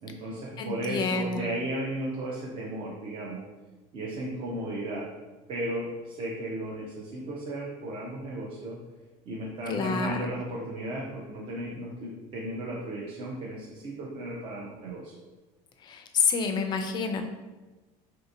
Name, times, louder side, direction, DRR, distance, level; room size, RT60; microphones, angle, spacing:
voice 1, 0.0-3.4 3.9-5.1 5.5-8.8 9.3-15.1, right 1 dB, 45° right, -4 dB, 0.5 m, -35 dB
voice 2, 0.6-1.4 9.7-10.2 15.9-17.2, left 5 dB, 35° left, 6 dB, 0.3 m, -28 dB
3.4 x 2.8 x 2.5 m, 1.2 s
cardioid pair, 140°, 13 cm